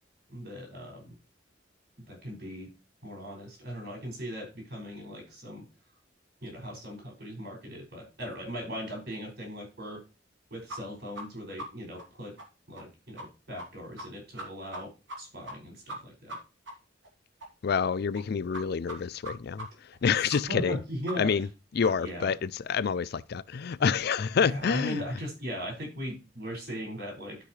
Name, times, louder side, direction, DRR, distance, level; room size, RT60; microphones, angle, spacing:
voice 1, 0.3-1.1 2.1-2.7 3.0-5.6 6.4-10.0 10.5-12.3 12.7-14.9 15.2-16.4 20.2-21.5 22.0-22.3 24.4-27.4, equal, 60° right, 6.2 m, -38 dB
sound 1, 10.7-10.8 11.1-11.2 11.6-11.7 12.0-12.1 12.4-12.5 12.7-12.8 13.2-13.3 13.6-13.7 14.0-14.1 14.4-14.8 15.1-15.2 15.5-15.6 15.9-16.0 16.3-16.4 16.7-16.8 17.0-17.1 17.4-17.5 17.8-17.9 18.1-18.2 18.5-18.6 18.9-19.0 19.2-19.3 19.6-19.7 19.9-20.0 20.3-20.4 20.7-20.8 21.1-21.2 21.4-21.5 21.8-21.9 22.2-22.3, right 1 dB, 85° right, 3.1 m, -39 dB
voice 2, 17.6-19.7 20.0-20.7 21.2-21.5 21.8-25.0, left 6 dB, 60° left, 0.4 m, -27 dB
13.0 x 6.1 x 3.3 m
head